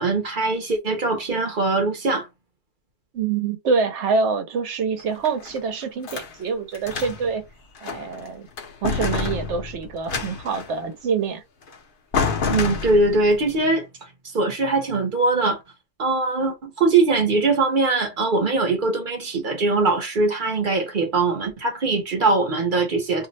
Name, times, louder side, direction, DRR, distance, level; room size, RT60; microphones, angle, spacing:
voice 1, 0.0-2.3 12.5-15.6 16.0-23.3, right 3 dB, 45° right, 0.9 m, -21 dB
voice 2, 3.1-7.4 7.8-8.5 8.8-11.4, right 5 dB, 70° right, 1.0 m, -25 dB
sound 1, 5.0-6.3 6.7-7.4 7.8-8.3 8.6-10.8 11.7-11.8 12.1-13.3, left 5 dB, 55° left, 0.8 m, -28 dB
2.6 x 2.1 x 3.9 m
omnidirectional pair, 1.3 m